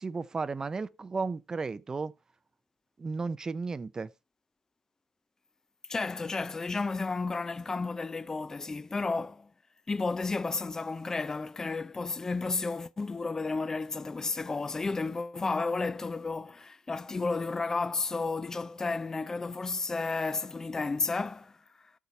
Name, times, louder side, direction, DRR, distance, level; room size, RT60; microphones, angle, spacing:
voice 1, 0.0-2.1 3.0-4.1, right 4 dB, 25° right, 0.6 m, -34 dB
voice 2, 5.9-9.5 9.9-21.6, left 3 dB, 20° left, 0.5 m, -32 dB
12.5 x 8.2 x 3.2 m
cardioid pair, 90°, 2 cm